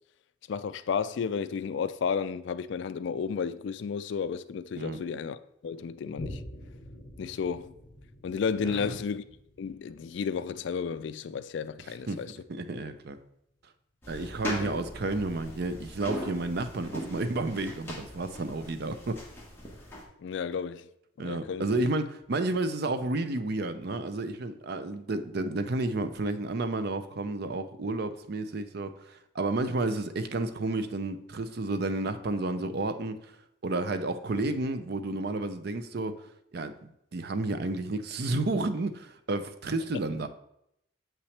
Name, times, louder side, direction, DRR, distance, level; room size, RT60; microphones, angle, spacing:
voice 1, 0.5-6.4 7.2-7.7 8.2-9.2 9.6-12.3 14.6-14.7 20.2-20.9 21.2-21.7, left 6 dB, 60° left, 0.3 m, -32 dB
Boom, 6.2-13.1 13.6-13.7, left 1 dB, 40° left, 1.0 m, -47 dB
voice 2, 8.6-9.0 12.1-12.2 12.5-13.2 14.1-19.2 21.2-33.3 33.6-36.1 36.5-40.3, right 2 dB, 50° right, 0.5 m, -31 dB
sound 1, 14.0-20.0, equal, 10° left, 1.3 m, -40 dB
7.3 x 5.7 x 3.2 m
head